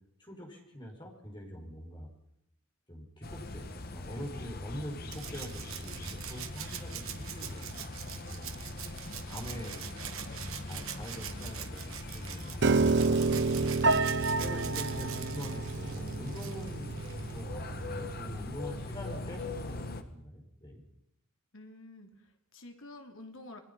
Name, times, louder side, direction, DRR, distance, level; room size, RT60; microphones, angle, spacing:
voice 1, 0.2-2.1 2.9-8.5 9.2-9.8 10.2-20.8, equal, 20° left, 0 dB, 5.2 m, -44 dB
sound 1, 3.2-20.0, left 2 dB, 45° left, 1.5 m, -42 dB
Rattle (instrument), 5.1-17.4 18.8-18.9, right 10 dB, 70° right, 1.5 m, -44 dB
Piano, 12.6-18.8, right 3 dB, 55° right, 0.8 m, -30 dB
voice 2, 21.5-23.6, left 2 dB, 65° left, 4 dB, 3.3 m, -49 dB
28.0 x 21.0 x 5.6 m, 0.77 s
head